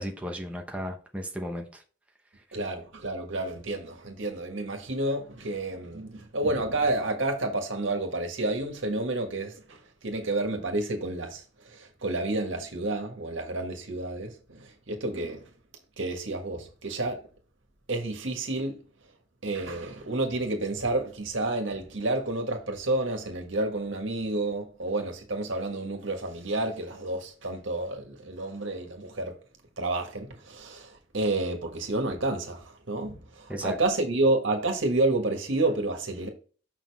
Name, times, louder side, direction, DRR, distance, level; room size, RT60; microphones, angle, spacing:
voice 1, 0.0-1.8 33.5-33.8, equal, 5° right, 0.9 m, -35 dB
voice 2, 2.5-15.4 16.0-17.2 17.9-18.8 19.4-29.3 29.8-36.3, right 2 dB, 80° right, 1.7 m, -30 dB
6.7 x 5.7 x 3.5 m
head